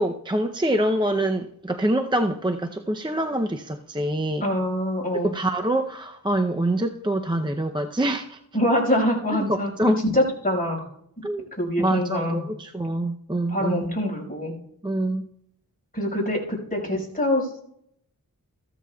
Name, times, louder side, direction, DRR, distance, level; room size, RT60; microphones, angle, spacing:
voice 1, 0.0-4.4 5.2-8.4 9.3-10.0 11.2-11.5 11.8-13.8 14.8-15.2, right 1 dB, 15° right, 5 dB, 0.6 m, -25 dB
voice 2, 4.4-5.3 8.5-10.8 11.6-12.5 13.5-14.5 15.9-17.6, left 1 dB, 25° left, -2 dB, 5.1 m, -24 dB
14.5 x 13.5 x 2.3 m, 0.74 s
wide cardioid pair, 55°, 36 cm